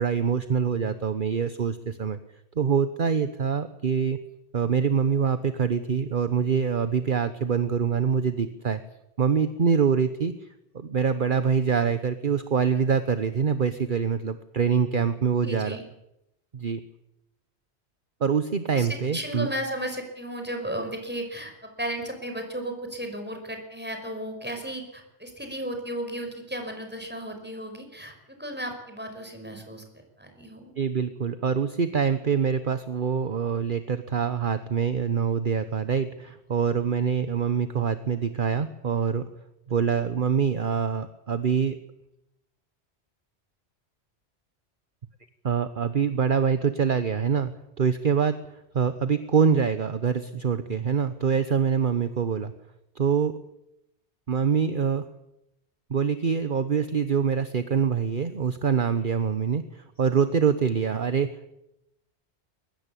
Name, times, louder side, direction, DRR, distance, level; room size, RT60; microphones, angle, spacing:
voice 1, 0.0-2.2 2.6-4.2 4.5-8.8 9.2-10.5 10.7-15.8 16.5-16.8 18.2-19.5 30.8-39.3 39.7-41.8 45.4-47.5 47.8-48.4 48.7-52.5 53.0-53.4 54.3-55.0 55.9-61.5, right 6 dB, 50° right, 11 dB, 1.2 m, -25 dB
voice 2, 15.4-15.8 18.7-28.1 28.4-29.8 30.2-30.7, right 1 dB, 10° right, 4 dB, 5.1 m, -34 dB
23.0 x 19.5 x 8.5 m, 0.85 s
omnidirectional pair, 1.1 m